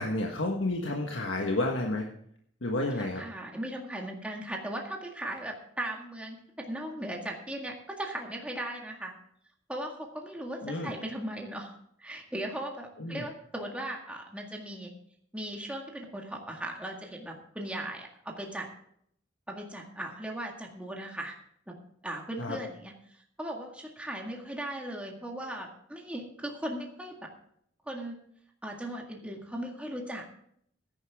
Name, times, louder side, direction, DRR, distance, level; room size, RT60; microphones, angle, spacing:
voice 1, 0.0-2.1 2.6-3.2 10.6-10.9 13.0-13.2 22.4-22.6, left 2 dB, 80° left, 1 dB, 1.5 m, -30 dB
voice 2, 3.0-9.1 9.7-14.9 15.3-18.7 19.5-21.4 21.7-21.8 22.0-27.3 27.9-28.2 28.6-30.2, right 1 dB, 5° right, 0 dB, 1.9 m, -38 dB
15.5 x 11.0 x 3.6 m, 0.67 s
head